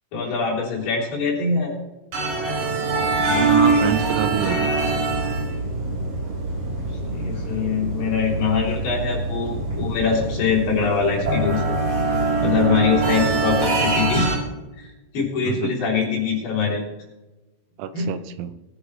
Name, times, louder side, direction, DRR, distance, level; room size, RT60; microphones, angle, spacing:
voice 1, 0.1-1.8 6.9-11.8 12.4-14.4 14.8-14.9 15.1-16.8 17.9-18.1, left 5 dB, 45° left, -4 dB, 4.6 m, -23 dB
sound 1, 2.1-14.3, right 3 dB, 45° right, 4.8 m, -23 dB
voice 2, 3.3-4.8 12.9-13.0 15.5-15.7 17.8-18.5, right 10 dB, 85° right, 11 dB, 3.5 m, -27 dB
21.0 x 10.0 x 3.2 m, 1.1 s
omnidirectional pair, 5.9 m